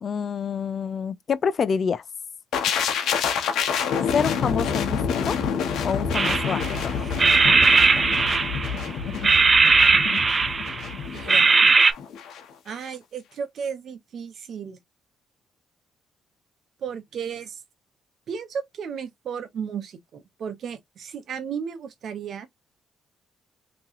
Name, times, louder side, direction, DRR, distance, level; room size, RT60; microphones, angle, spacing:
voice 1, 0.0-2.0 4.1-5.4 5.8-7.0, left 6 dB, 50° left, 0.4 m, -27 dB
sound 1, 2.5-12.4 12.7-12.9, left 6 dB, 80° left, 1.0 m, -27 dB
sound 2, 6.1-6.8 7.2-8.8 9.2-10.9 11.3-11.9, right 4 dB, 35° right, 0.4 m, -18 dB
voice 2, 11.1-11.5 12.6-14.8 16.8-17.6 18.3-22.5, right 7 dB, 60° right, 0.8 m, -34 dB
3.4 x 3.0 x 2.8 m
cardioid pair, 90°, 0 cm